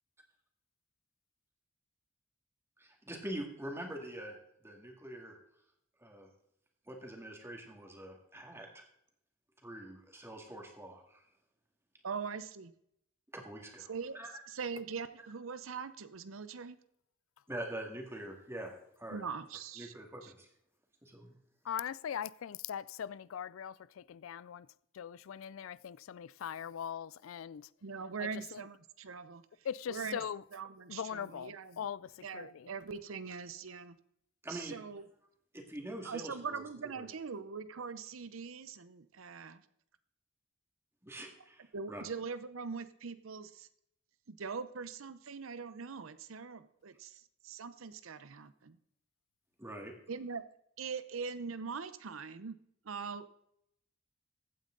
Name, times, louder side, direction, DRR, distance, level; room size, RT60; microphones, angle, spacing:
voice 1, 2.8-4.4 4.6-5.4 6.0-6.3 6.9-8.8 9.6-11.2 13.3-14.3 17.5-19.2 19.8-20.5 21.0-21.3 34.4-34.8 35.5-36.6 37.0-37.1 41.0-42.0 49.6-49.9, right 1 dB, 15° right, 2.1 m, -44 dB
voice 2, 12.0-12.7 13.9-14.2 14.5-16.8 19.1-19.9 20.2-20.3 27.8-29.4 29.9-30.2 30.5-31.8 32.2-34.0 34.5-35.1 36.0-39.6 41.7-43.7 44.3-48.8 50.1-50.4 50.8-52.6 52.8-53.3, right 5 dB, 85° right, 0.7 m, -42 dB
voice 3, 21.6-24.7 24.9-27.7 28.2-28.7 29.6-30.4 30.9-32.7, left 8 dB, 85° left, 0.4 m, -41 dB
15.5 x 8.9 x 3.9 m
head